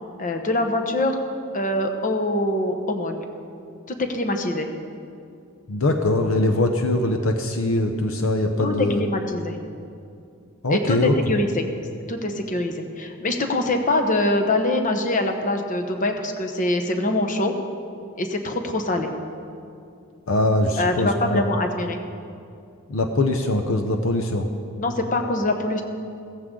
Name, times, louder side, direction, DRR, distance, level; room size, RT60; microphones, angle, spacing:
voice 1, 0.2-1.2 1.5-3.2 3.9-4.7 8.6-9.6 10.7-11.6 12.1-17.5 18.2-19.1 20.8-22.0 24.8-25.8, left 1 dB, 35° left, 5 dB, 1.1 m, -24 dB
voice 2, 5.7-9.0 10.6-11.4 20.3-21.4 22.9-24.5, left 1 dB, 65° left, 5 dB, 0.8 m, -22 dB
15.5 x 14.5 x 3.8 m, 2.5 s
head